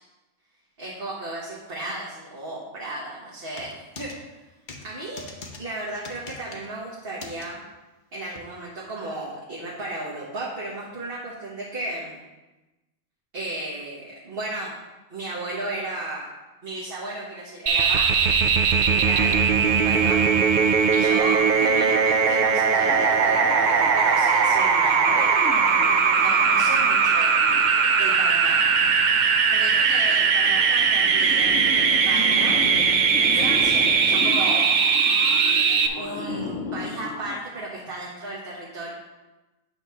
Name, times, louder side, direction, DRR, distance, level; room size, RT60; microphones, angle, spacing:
voice 1, 0.8-4.1 4.8-7.6 8.1-12.2 13.3-14.7 15.1-16.2 16.6-18.3 18.9-23.4 23.7-25.3 26.1-27.3 27.9-28.9 29.5-32.6 33.2-34.6 35.9-38.9, right 2 dB, 45° right, -6 dB, 1.4 m, -34 dB
sound 1, 3.5-4.2 4.7-4.9 5.2-5.6 6.0-6.7 7.2-7.5 8.4-8.5, left 3 dB, 45° left, 0.9 m, -40 dB
sound 2, 17.7-35.9, right 6 dB, 65° right, 0.4 m, -20 dB
sound 3, 22.8-37.4, left 4 dB, 75° left, 1.1 m, -36 dB
8.7 x 3.1 x 5.6 m, 1.1 s
omnidirectional pair, 1.3 m